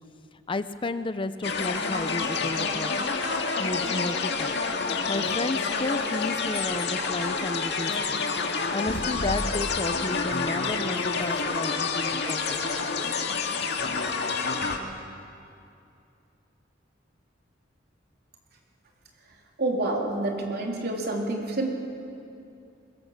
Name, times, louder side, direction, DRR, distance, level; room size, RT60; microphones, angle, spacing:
voice 1, 0.5-3.1 3.6-4.6 5.1-8.2 8.7-12.6, left 2 dB, 30° left, 11 dB, 0.7 m, -32 dB
sound 1, 1.4-14.8, left 4 dB, 65° left, 1.9 m, -28 dB
voice 2, 19.6-21.7, right 2 dB, 60° right, 0 dB, 3.5 m, -28 dB
23.0 x 21.5 x 7.4 m, 2.6 s
head